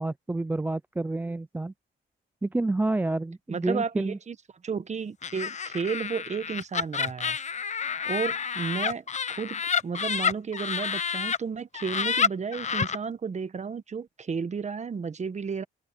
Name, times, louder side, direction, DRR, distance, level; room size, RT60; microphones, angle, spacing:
voice 1, 0.0-1.7 2.4-4.2, right 2 dB, 10° right, 0.3 m, -29 dB
voice 2, 3.5-4.4 4.6-7.4 8.0-9.0 9.3-15.6, right 5 dB, 35° right, 1.3 m, -32 dB
Laughter, 5.2-11.4 11.7-13.0, left 6 dB, 35° left, 0.8 m, -29 dB
cardioid pair, 90°, 20 cm